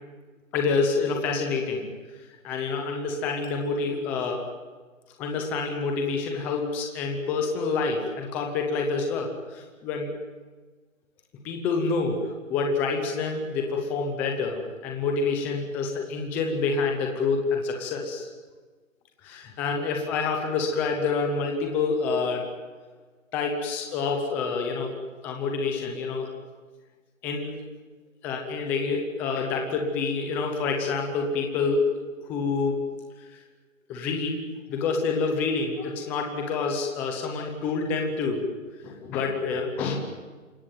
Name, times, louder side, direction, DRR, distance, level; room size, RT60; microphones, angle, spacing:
voice 1, 0.5-1.9 2.4-4.4 5.2-10.1 11.4-12.2 12.5-18.3 19.2-22.4 23.3-25.0 25.2-26.3 27.2-27.5 28.2-31.8 32.2-32.8 33.9-34.4 34.7-38.4 38.8-40.0, left 4 dB, 5° left, 2 dB, 0.8 m, -27 dB
28.0 x 17.0 x 9.3 m, 1.4 s
hypercardioid pair, 160°, 41 cm